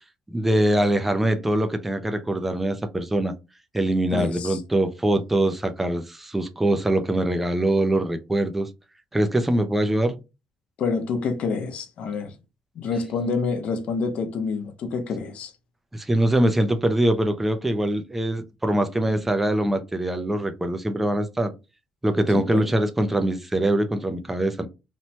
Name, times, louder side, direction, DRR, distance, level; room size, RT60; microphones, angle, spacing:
voice 1, 0.3-3.3 3.7-8.7 9.1-10.2 15.9-21.5 22.0-24.7, right 1 dB, 10° right, 0.4 m, -23 dB
voice 2, 4.1-4.6 10.8-12.3 12.8-15.5 22.3-22.7, left 4 dB, 55° left, 0.6 m, -27 dB
2.9 x 2.1 x 2.7 m
cardioid pair, 150°, 2 cm